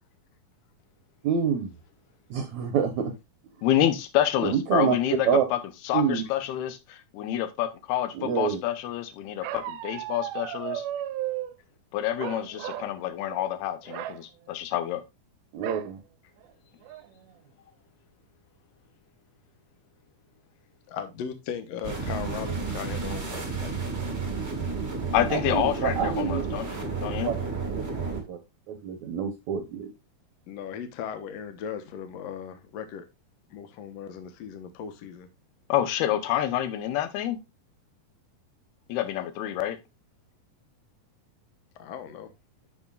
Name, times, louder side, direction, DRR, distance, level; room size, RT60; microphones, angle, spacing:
voice 1, 1.2-1.7 2.3-3.1 4.4-5.0 5.2-5.5 5.9-6.2 8.1-8.6 15.5-16.0 25.3-26.4 27.2-27.3 27.7-27.8 28.3-28.4 28.7-29.9, right 7 dB, 65° right, 1.9 m, -27 dB
voice 2, 3.6-5.6 5.8-10.8 11.9-15.0 25.1-27.4 35.7-37.4 38.9-39.8, left 12 dB, 85° left, 3.0 m, -28 dB
Bark, 9.4-11.5 12.2-12.9 13.3-13.5 13.9-14.2 15.6-15.9 16.4-16.5 16.9-17.3, right 13 dB, 90° right, 2.6 m, -35 dB
voice 3, 20.9-23.8 30.5-33.1 33.5-35.3 41.8-42.3, left 7 dB, 70° left, 1.6 m, -38 dB
sound 1, 21.8-28.2, right 4 dB, 35° right, 1.0 m, -31 dB
11.5 x 5.9 x 2.4 m
omnidirectional pair, 4.4 m